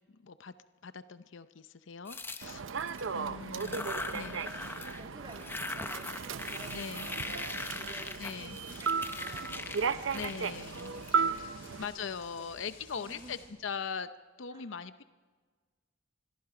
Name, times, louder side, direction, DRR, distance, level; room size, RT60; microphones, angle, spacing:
voice 1, 0.1-0.5 0.8-2.6 3.1-4.4 6.7-7.1 8.2-8.6 10.1-10.9 11.4-11.5 11.8-14.1 14.4-15.0, left 6 dB, 70° left, 12 dB, 0.6 m, -41 dB
sound 1, 2.1-3.1 3.5-5.0 5.3-11.7, left 2 dB, 10° left, 0.8 m, -41 dB
Human voice / Subway metro underground, 2.4-11.8, right 5 dB, 75° right, 0.7 m, -35 dB
voice 2, 3.0-4.7 5.0-9.5 11.5-12.6 13.0-13.4 14.5-14.7, right 2 dB, 25° right, 5 dB, 1.7 m, -54 dB
sound 2, 6.5-13.5, left 3 dB, 50° left, 7.1 m, -54 dB
25.5 x 22.0 x 4.9 m, 1.5 s
head